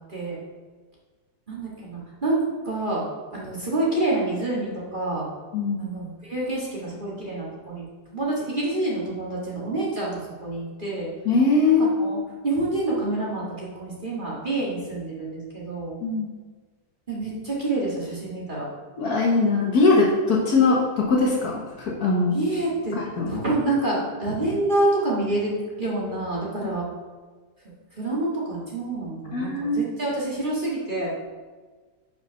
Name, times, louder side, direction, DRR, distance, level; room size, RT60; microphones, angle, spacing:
voice 1, 1.5-3.0 3.3-5.3 5.8-7.8 8.1-11.1 11.7-12.2 12.4-16.0 17.1-18.7 22.3-22.9 23.3-25.5 25.8-26.9 28.0-31.1, right 2 dB, 30° right, -6 dB, 1.6 m, -27 dB
voice 2, 5.5-5.8 11.2-11.8 12.1-12.2 16.0-16.3 19.0-22.4 22.9-23.4 29.3-29.9, left 3 dB, 60° left, -1 dB, 1.4 m, -21 dB
5.9 x 5.1 x 5.5 m, 1.4 s
omnidirectional pair, 2.0 m